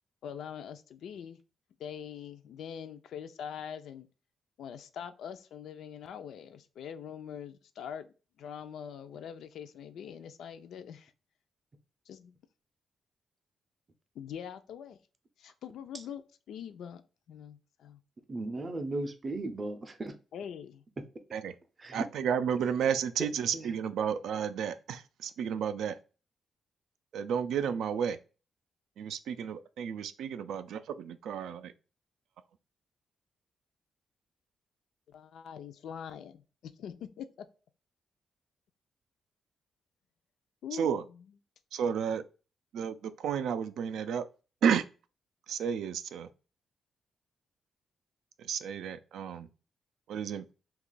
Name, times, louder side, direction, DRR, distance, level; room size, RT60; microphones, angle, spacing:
voice 1, 0.2-1.4 1.8-4.1 4.6-11.1 12.1-12.4 14.1-15.0 15.4-17.0 17.3-18.0 20.3-20.8 35.1-37.5 40.6-41.1, left 8 dB, 80° left, 0.4 m, -43 dB
voice 2, 18.3-20.1 21.8-22.1 23.5-23.7, right 2 dB, 25° right, 0.5 m, -36 dB
voice 3, 21.9-26.0 27.1-28.2 29.0-31.7 40.7-41.0 41.7-42.2 42.7-44.3 44.6-44.8 45.5-46.3 48.4-49.5 50.1-50.5, right 7 dB, 85° right, 0.3 m, -32 dB
2.9 x 2.3 x 3.8 m
cardioid pair, 145°, 0 cm